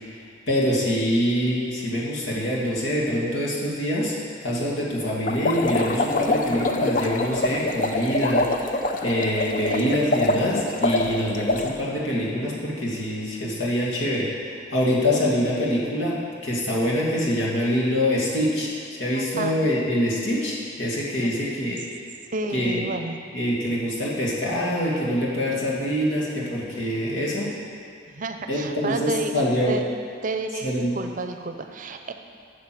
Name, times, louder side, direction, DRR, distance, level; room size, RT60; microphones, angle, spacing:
voice 1, 0.1-4.1 4.4-16.2 16.4-18.7 19.0-21.8 22.5-22.8 23.3-27.5 28.5-29.7 30.6-30.9, equal, 80° left, -4 dB, 2.2 m, -25 dB
sound 1, 5.3-11.7, left 2 dB, 45° left, 0.6 m, -25 dB
voice 2, 9.6-9.9 19.1-19.6 21.2-21.3 21.7-21.8 22.3-23.2 28.1-29.8 30.2-32.1, right 3 dB, 45° right, 6 dB, 0.6 m, -31 dB
9.0 x 6.1 x 7.7 m, 2.3 s
head